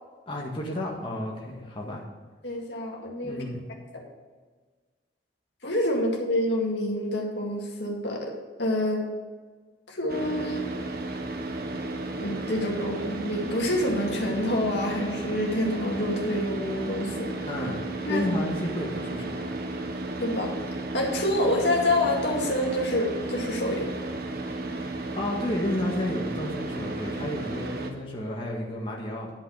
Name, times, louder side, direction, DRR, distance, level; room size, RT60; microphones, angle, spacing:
voice 1, 0.3-2.0 3.2-3.6 17.5-17.8 18.1-19.5 25.2-29.3, left 1 dB, 30° left, -3 dB, 1.8 m, -31 dB
voice 2, 2.4-3.4 3.9-4.0 5.6-9.1 9.9-10.7 12.2-17.3 18.0-18.3 20.2-20.6 20.9-23.9, left 1 dB, 70° left, 0 dB, 2.1 m, -27 dB
Car / Idling, 10.1-27.9, right 2 dB, 60° right, 1.2 m, -34 dB
11.0 x 5.8 x 7.1 m, 1.4 s
head